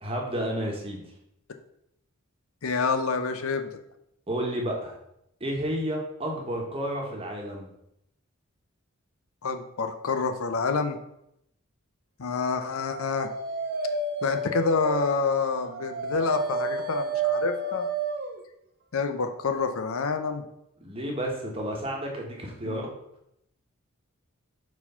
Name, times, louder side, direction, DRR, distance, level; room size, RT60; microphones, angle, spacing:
voice 1, 0.0-1.0 4.3-4.9 5.4-7.7 20.8-22.9, equal, 25° right, 0 dB, 1.3 m, -31 dB
voice 2, 2.6-3.7 9.4-11.0 12.2-13.3 14.2-17.9 18.9-20.4 22.6-22.8, left 4 dB, 70° left, 7 dB, 0.6 m, -28 dB
Dog, 12.8-18.4, right 3 dB, 45° right, 0.7 m, -30 dB
4.6 x 4.3 x 5.6 m, 0.78 s
head